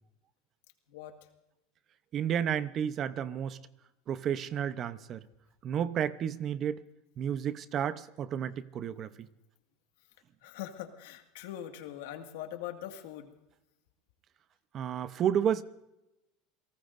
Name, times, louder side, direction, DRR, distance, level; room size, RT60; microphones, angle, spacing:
voice 1, 0.9-1.3 8.9-9.1 10.4-13.3, left 11 dB, 80° left, 2.0 m, -42 dB
voice 2, 2.1-3.6 4.1-5.2 5.6-6.8 7.2-9.3 14.7-15.6, right 9 dB, 40° right, 0.8 m, -31 dB
28.5 x 18.5 x 2.6 m
supercardioid pair, 125°, 0 cm